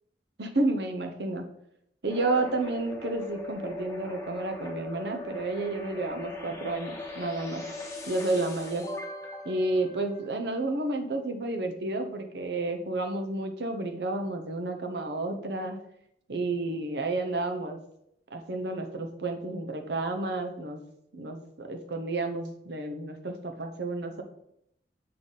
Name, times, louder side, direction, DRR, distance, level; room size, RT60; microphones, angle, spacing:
voice 1, 0.4-1.4 2.0-7.6 8.1-8.8 9.4-15.8 16.3-17.8 18.3-20.8 21.1-24.2, right 2 dB, 65° right, 5 dB, 0.8 m, -31 dB
sound 1, 2.1-10.7, left 2 dB, 20° left, 1.1 m, -40 dB
6.6 x 4.1 x 3.8 m, 0.76 s
head